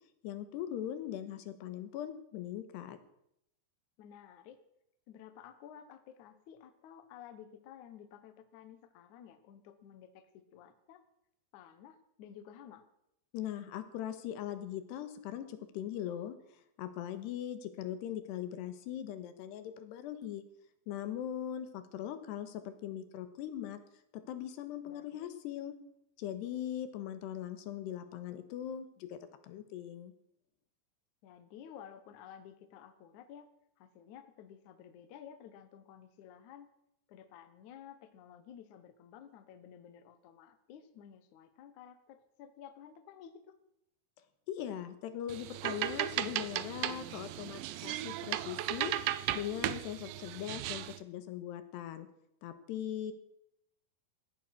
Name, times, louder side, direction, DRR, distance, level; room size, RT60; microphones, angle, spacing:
voice 1, 0.2-3.0 13.3-16.4 16.8-20.4 20.9-23.8 24.1-25.8 26.2-30.1 44.5-48.9 49.3-52.1 52.4-53.1, left 10 dB, 85° left, 11 dB, 3.4 m, -40 dB
voice 2, 4.0-4.6 5.1-11.0 11.5-12.8 24.9-25.3 31.2-33.5 33.8-36.7 37.1-43.6, left 9 dB, 60° left, 10 dB, 2.2 m, -53 dB
sound 1, 45.3-51.0, right 14 dB, 90° right, 1.9 m, -36 dB
17.0 x 14.0 x 6.1 m, 0.77 s
omnidirectional pair, 4.8 m